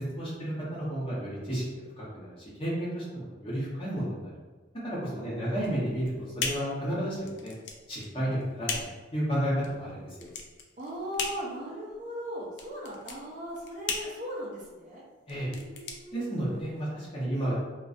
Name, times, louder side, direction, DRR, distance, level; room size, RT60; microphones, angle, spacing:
voice 1, 0.0-4.3 4.8-7.5 7.9-8.8 9.1-10.3 15.3-15.5 16.1-17.6, right 1 dB, 30° left, -8 dB, 0.8 m, -32 dB
voice 2, 5.1-5.8 10.8-15.0 15.4-16.6, equal, 40° right, -4 dB, 0.5 m, -39 dB
sound 1, 5.5-16.9, left 5 dB, 65° left, 0.3 m, -38 dB
2.6 x 2.2 x 2.4 m, 1.3 s
head